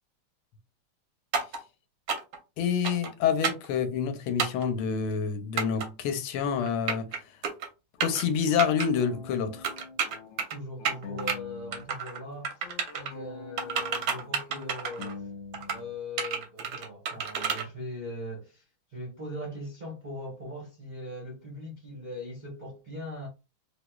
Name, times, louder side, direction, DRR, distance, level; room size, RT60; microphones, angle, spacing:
sound 1, 1.3-1.6 2.1-2.4 2.8-3.1 3.4-3.7 4.4-4.7 5.6-5.9 6.6-7.2 7.4-7.7 8.0-8.2 8.6-8.9 9.6-10.6 10.9-11.4 11.7-12.2 12.4-13.1 13.6-15.1 15.5-15.8 16.2-17.6, right 6 dB, 65° right, 0.9 m, -30 dB
voice 1, 2.6-7.1 8.0-9.7, left 7 dB, 90° left, 1.5 m, -27 dB
sound 2, 8.0-11.9 12.1-16.0, left 4 dB, 75° left, 1.2 m, -45 dB
voice 2, 10.5-15.3 15.7-18.6 18.9-23.3, left 1 dB, 40° right, 0.6 m, -40 dB
3.5 x 2.9 x 2.2 m
omnidirectional pair, 2.3 m